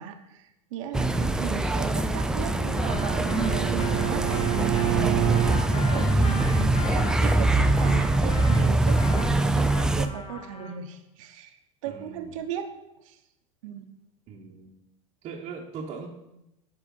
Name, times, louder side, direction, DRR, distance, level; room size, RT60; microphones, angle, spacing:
voice 1, 0.0-4.5 5.7-11.6 11.8-12.7 13.0-13.2 13.6-13.9, right 9 dB, 80° right, 6 dB, 1.0 m, -37 dB
sound 1, 0.9-10.1, right 2 dB, 5° right, 0.4 m, -23 dB
Bowed string instrument, 1.9-5.7, right 16 dB, 60° right, 0.5 m, -29 dB
Trumpet, 2.8-10.8, left 3 dB, 30° left, 1.3 m, -40 dB
voice 2, 11.8-12.3 14.3-14.7 15.2-16.1, right 5 dB, 35° right, -3 dB, 1.0 m, -40 dB
9.8 x 4.9 x 5.4 m, 0.90 s
supercardioid pair, 140°, 17 cm